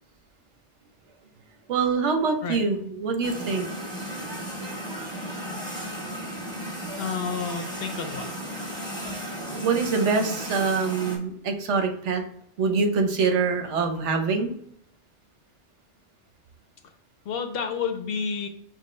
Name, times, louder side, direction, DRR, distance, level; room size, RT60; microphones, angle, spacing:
voice 1, 1.7-3.7 9.5-12.2 12.6-14.5, right 4 dB, 75° right, 5 dB, 1.0 m, -24 dB
sound 1, 3.2-11.2, equal, 5° left, 0.9 m, -35 dB
voice 2, 7.0-8.3 17.3-18.5, left 5 dB, 65° left, 6 dB, 0.7 m, -30 dB
6.3 x 2.2 x 3.1 m, 0.68 s
omnidirectional pair, 1.2 m